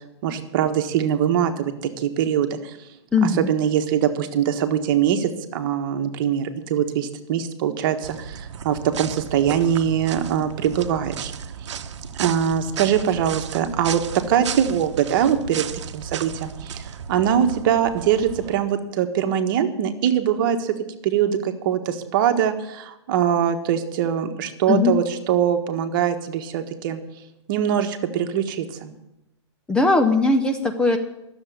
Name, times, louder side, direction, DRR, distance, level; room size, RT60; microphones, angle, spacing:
voice 1, 0.2-2.7 3.2-11.3 12.2-14.0 14.3-15.6 15.9-20.7 21.0-27.0 27.5-28.9, right 9 dB, 45° right, 6 dB, 1.5 m, -22 dB
voice 2, 3.1-3.5 24.7-24.9 29.7-31.0, left 3 dB, 5° left, 6 dB, 0.6 m, -19 dB
sound 1, 8.0-18.6, right 7 dB, 75° right, 1.0 m, -34 dB
12.5 x 7.2 x 9.4 m, 0.89 s
hypercardioid pair, 150°, 15 cm